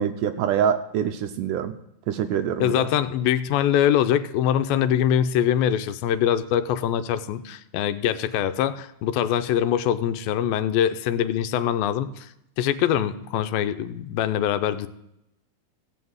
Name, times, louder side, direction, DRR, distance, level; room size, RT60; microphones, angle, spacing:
voice 1, 0.0-1.8 2.1-2.9, right 8 dB, 80° right, 9 dB, 2.0 m, -25 dB
voice 2, 2.6-12.3 12.6-14.9, left 10 dB, 85° left, 11 dB, 2.5 m, -23 dB
15.5 x 5.7 x 7.9 m, 0.83 s
omnidirectional pair, 4.1 m